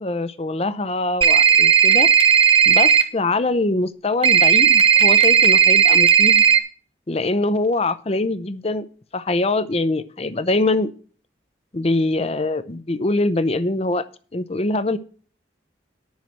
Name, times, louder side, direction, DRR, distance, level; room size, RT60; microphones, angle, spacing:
voice 1, 0.0-2.1 2.7-6.4 7.1-8.8 9.1-10.9 11.7-14.0 14.3-15.0, left 2 dB, 35° left, 14 dB, 0.7 m, -23 dB
sound 1, 1.2-3.0 4.2-6.6, right 8 dB, 30° right, 1.1 m, -14 dB
10.5 x 5.8 x 7.7 m, 0.41 s
head